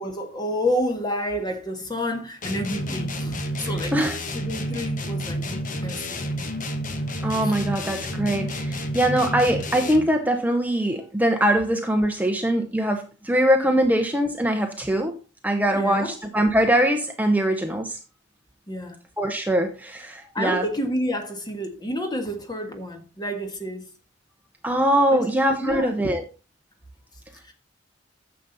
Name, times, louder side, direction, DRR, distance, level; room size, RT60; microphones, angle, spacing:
voice 1, 0.0-6.5 7.4-7.6 15.7-16.1 18.7-19.0 20.3-23.9 25.1-25.3 25.6-25.9 27.5-27.6, equal, 20° left, 1.5 m, -29 dB
sound 1, 2.4-10.2, equal, 45° left, 1.2 m, -30 dB
voice 2, 7.2-15.1 15.4-18.0 19.2-20.6 24.6-26.2, right 1 dB, 10° right, 0.8 m, -22 dB
9.9 x 7.0 x 4.0 m
head